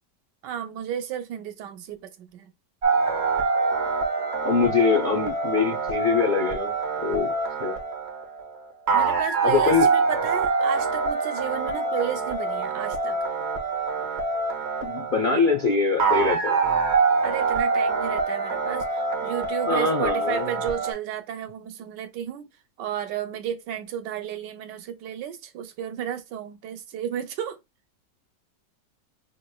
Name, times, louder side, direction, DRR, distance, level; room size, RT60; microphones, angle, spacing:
voice 1, 0.4-2.5 8.9-13.2 15.3-15.4 17.2-22.5 22.8-27.6, right 9 dB, 80° right, 1.3 m, -33 dB
Chopper Synth Auto Focus, 2.8-20.9, right 4 dB, 45° right, 1.0 m, -25 dB
voice 2, 4.4-6.7 7.0-7.3 7.6-7.8 9.4-9.9 14.8-16.6 19.7-20.5, left 5 dB, 65° left, 0.5 m, -23 dB
5.0 x 3.0 x 2.3 m
omnidirectional pair, 1.9 m